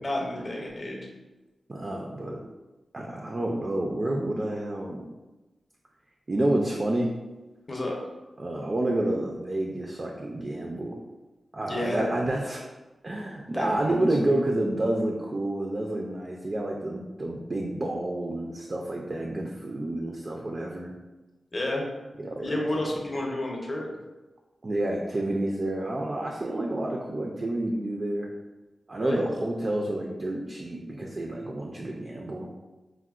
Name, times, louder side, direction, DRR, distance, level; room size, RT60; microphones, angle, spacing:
voice 1, 0.0-1.1 7.7-8.0 11.7-12.0 13.5-14.0 21.5-21.8 22.4-23.9 29.0-29.2, left 1 dB, 30° left, -1 dB, 0.6 m, -30 dB
voice 2, 1.7-2.4 2.9-5.1 6.3-7.1 8.4-11.0 11.5-12.7 13.0-20.9 22.2-22.9 24.6-28.3 28.9-32.5, right 1 dB, 35° right, -1 dB, 0.3 m, -29 dB
4.5 x 2.1 x 2.3 m, 1.1 s
wide cardioid pair, 135°, 0 cm